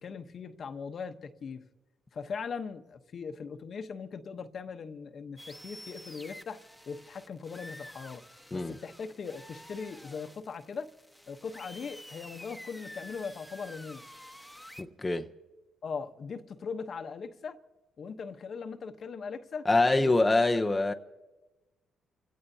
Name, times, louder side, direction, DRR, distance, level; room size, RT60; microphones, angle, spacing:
voice 1, 0.0-1.6 2.1-6.6 6.9-8.2 8.5-10.9 11.3-14.0 15.8-17.6 18.0-19.7 19.9-20.1, left 5 dB, 50° left, 1.0 m, -40 dB
sound 1, 5.4-14.8, left 1 dB, ahead, 1.2 m, -49 dB
voice 2, 14.8-15.3 19.7-20.9, left 2 dB, 20° left, 0.7 m, -25 dB
29.5 x 17.0 x 2.8 m
cardioid pair, 90°, 0 cm